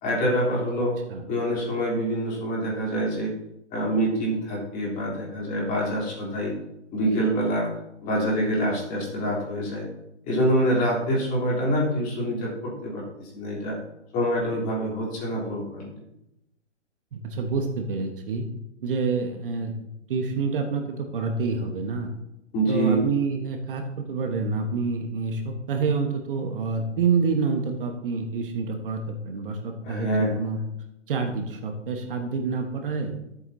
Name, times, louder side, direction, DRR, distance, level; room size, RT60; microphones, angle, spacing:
voice 1, 0.0-0.9 1.3-3.3 3.7-6.5 6.9-7.7 8.0-9.9 10.3-13.8 14.1-16.0 22.5-23.0 29.8-30.3, right 1 dB, 20° left, -4 dB, 3.4 m, -26 dB
voice 2, 17.1-18.4 18.8-19.8 20.1-22.1 22.7-30.6 31.1-33.1, right 4 dB, 45° right, 5 dB, 1.3 m, -27 dB
13.0 x 8.1 x 2.8 m, 0.85 s
hypercardioid pair, 135°, 37 cm